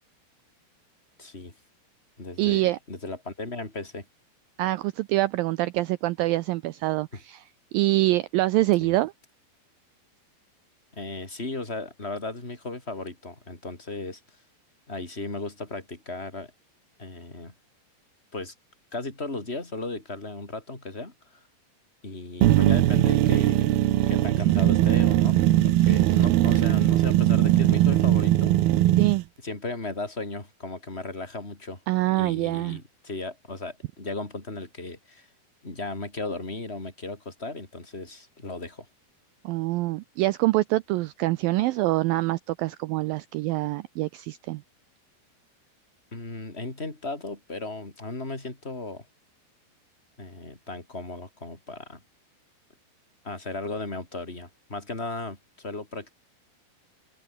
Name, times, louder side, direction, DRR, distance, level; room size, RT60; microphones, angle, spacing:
voice 1, 1.2-1.5 2.2-4.0 7.1-7.2 8.8-9.0 10.9-14.2 14.9-16.5 17.0-17.5 18.3-18.5 18.9-21.4 22.0-23.6 24.1-28.6 29.4-31.8 32.2-35.3 35.6-38.9 46.1-49.1 50.2-52.0 53.2-56.1, left 2 dB, 15° left, 4.6 m, -36 dB
voice 2, 2.4-2.8 4.6-7.4 7.7-9.1 29.0-29.2 31.9-32.8 39.5-44.6, right 18 dB, 90° right, 2.0 m, -25 dB
sound 1, 22.4-29.2, right 14 dB, 75° right, 3.0 m, -20 dB
omnidirectional pair, 4.8 m